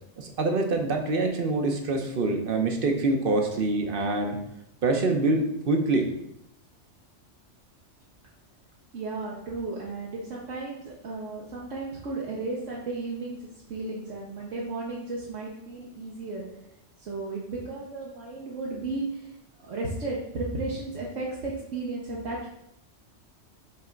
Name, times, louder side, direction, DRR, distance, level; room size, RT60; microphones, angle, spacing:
voice 1, 0.2-4.4 4.8-6.1, right 2 dB, 50° right, 4 dB, 1.0 m, -25 dB
voice 2, 8.9-16.4 17.0-19.3 19.6-22.5, right 3 dB, 75° right, -4 dB, 1.3 m, -34 dB
5.6 x 3.4 x 5.1 m, 0.81 s
omnidirectional pair, 1.3 m